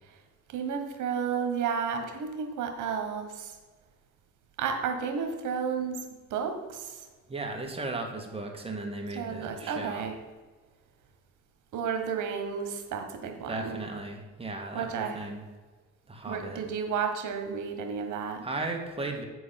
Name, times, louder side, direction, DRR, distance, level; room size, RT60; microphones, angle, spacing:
voice 1, 0.5-3.5 4.6-6.0 6.3-7.0 9.1-10.2 11.7-13.8 14.7-15.2 16.2-18.5, right 6 dB, 80° right, 5 dB, 1.3 m, -32 dB
voice 2, 7.3-10.1 13.2-15.4 16.1-16.6 18.4-19.2, right 2 dB, 20° right, 2 dB, 1.6 m, -36 dB
8.6 x 4.7 x 5.8 m, 1.3 s
cardioid pair, 90°, 30 cm